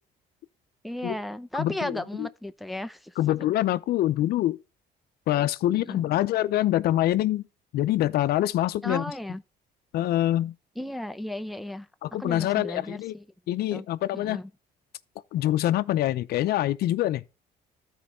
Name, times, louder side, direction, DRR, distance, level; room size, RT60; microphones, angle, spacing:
voice 1, 0.8-3.5 5.7-6.1 8.8-9.4 10.8-11.9 12.2-13.2 13.7-13.8 14.1-14.5, left 1 dB, ahead, 0.5 m, -35 dB
voice 2, 1.5-2.3 3.2-4.6 5.3-7.4 7.7-9.0 9.9-10.5 12.0-13.1 13.5-14.4 15.3-17.2, left 13 dB, 70° left, 0.6 m, -25 dB
13.5 x 4.6 x 3.1 m
cardioid pair, 110°, 17 cm